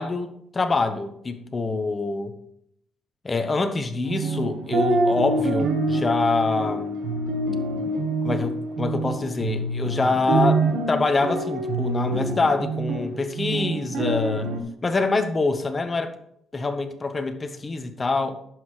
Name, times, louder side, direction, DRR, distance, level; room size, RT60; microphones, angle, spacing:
voice 1, 0.0-2.3 3.2-6.9 8.2-14.5 14.8-16.1 16.5-18.3, left 3 dB, 30° left, 8 dB, 1.1 m, -25 dB
sound 1, 4.0-14.6, right 2 dB, 80° right, 1.4 m, -26 dB
11.0 x 7.7 x 3.3 m, 0.72 s
cardioid pair, 90°, 0 cm